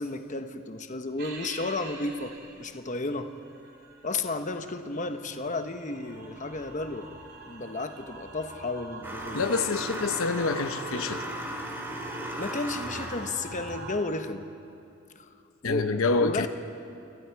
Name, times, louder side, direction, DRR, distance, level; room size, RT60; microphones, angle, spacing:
voice 1, 0.0-3.3 4.0-7.1 7.5-9.5 12.4-14.5 15.2-15.3 15.6-15.8 16.2-16.5, left 2 dB, 35° left, 7 dB, 1.1 m, -33 dB
sound 1, 1.2-14.0, right 3 dB, 50° right, 3.2 m, -45 dB
sound 2, 9.0-13.4, equal, 10° right, 2.5 m, -36 dB
voice 2, 9.3-11.3 15.6-16.5, left 4 dB, 80° left, 9 dB, 0.8 m, -27 dB
29.0 x 27.0 x 4.7 m, 2.6 s
head